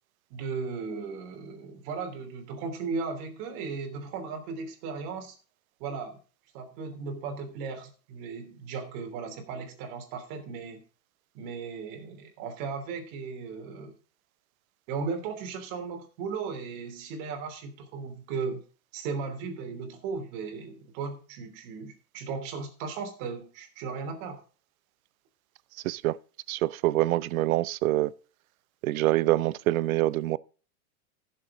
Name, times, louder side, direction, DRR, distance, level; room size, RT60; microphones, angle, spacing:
voice 1, 0.3-5.4 5.8-6.2 6.5-10.8 11.3-13.9 14.9-18.6 18.9-24.4, right 5 dB, 40° right, 3.2 m, -36 dB
voice 2, 25.8-26.2 26.5-28.1 28.8-30.4, right 16 dB, 65° right, 0.7 m, -25 dB
15.5 x 7.2 x 3.7 m
supercardioid pair, 155°, 45 cm